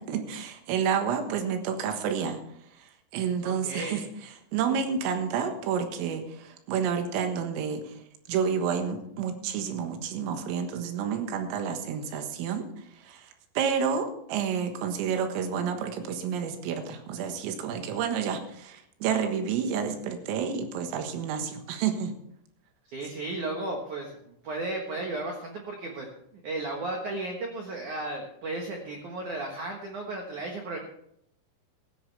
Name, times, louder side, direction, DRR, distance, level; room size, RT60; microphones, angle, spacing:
voice 1, 0.0-2.4 2.7-8.0 8.3-22.2, right 7 dB, 90° right, 6 dB, 4.1 m, -30 dB
voice 2, 3.4-4.1 22.9-26.1 26.4-30.8, right 2 dB, 70° right, 1 dB, 1.8 m, -34 dB
16.5 x 14.0 x 3.4 m, 0.73 s
omnidirectional pair, 5.8 m